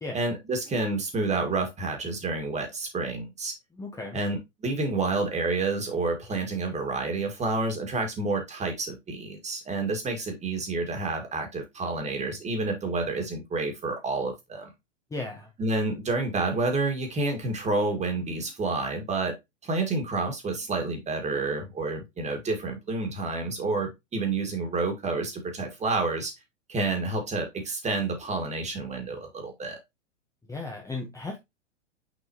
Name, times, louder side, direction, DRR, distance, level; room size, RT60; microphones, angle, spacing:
voice 1, 0.1-3.5 4.1-14.7 15.6-19.3 19.6-26.3 26.7-29.8, right 3 dB, 20° right, 5 dB, 2.0 m, -29 dB
voice 2, 3.8-4.2 15.1-15.5 30.5-31.4, left 3 dB, 10° left, 1 dB, 1.1 m, -35 dB
6.3 x 5.3 x 3.0 m, 0.21 s
figure-of-eight pair, 105°, 37 cm